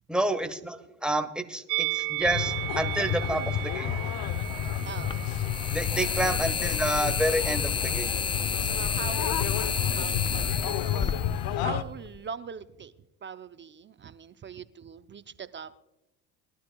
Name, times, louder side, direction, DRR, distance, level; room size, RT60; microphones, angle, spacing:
voice 1, 0.1-3.9 5.7-8.2, right 1 dB, ahead, 8 dB, 1.3 m, -29 dB
Musical instrument, 1.7-6.9 7.2-7.4, right 21 dB, 85° right, 1.0 m, -35 dB
sound 1, 2.2-11.8, left 10 dB, 60° left, 0.9 m, -31 dB
sound 2, 2.8-2.9 4.2-12.2, left 6 dB, 15° left, 0.3 m, -31 dB
voice 2, 4.8-5.3 8.6-11.1 11.5-12.9 13.2-15.7, right 6 dB, 30° right, 11 dB, 0.6 m, -41 dB
21.5 x 12.0 x 2.3 m, 0.93 s
supercardioid pair, 80°, 40 cm